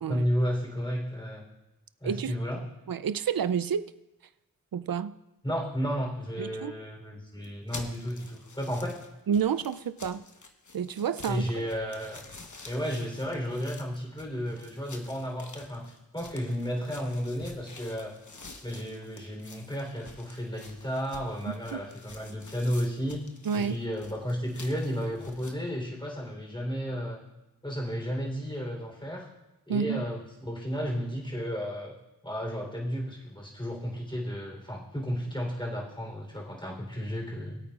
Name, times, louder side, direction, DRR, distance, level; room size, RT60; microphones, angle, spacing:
voice 1, 0.1-1.4 2.0-2.6 5.4-9.0 11.3-12.2 12.6-18.1 18.6-23.2 23.5-27.2 27.6-29.3 29.7-31.9 32.2-37.6, equal, 15° left, -2 dB, 3.5 m, -33 dB
voice 2, 2.0-2.4 2.9-3.8 4.7-5.1 6.4-6.8 9.3-10.2 10.7-11.5 21.5-21.8 23.4-23.8 29.7-30.0, right 7 dB, 70° right, 14 dB, 0.5 m, -29 dB
sound 1, 7.4-25.5, left 3 dB, 55° left, 1.1 m, -49 dB
21.0 x 8.7 x 2.4 m, 0.98 s
wide cardioid pair, 45°, 36 cm